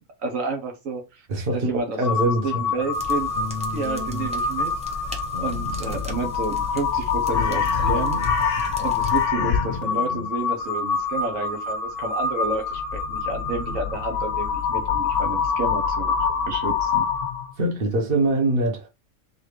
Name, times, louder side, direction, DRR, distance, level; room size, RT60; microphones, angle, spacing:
voice 1, 0.2-1.3 1.5-3.3 3.7-4.7 5.1-8.2 8.8-16.1 16.5-17.1, right 3 dB, 85° right, 1.4 m, -30 dB
voice 2, 1.3-2.8 17.6-18.9, right 1 dB, 45° right, 1.3 m, -23 dB
Crow, 2.0-17.5, left 6 dB, 75° left, 1.1 m, -25 dB
sound 1, 2.9-9.3, left 1 dB, 5° right, 0.8 m, -38 dB
sound 2, 3.4-4.3 5.3-6.3 7.3-8.3 9.3-10.3, left 3 dB, 40° left, 0.8 m, -35 dB
4.1 x 3.4 x 3.2 m
omnidirectional pair, 1.3 m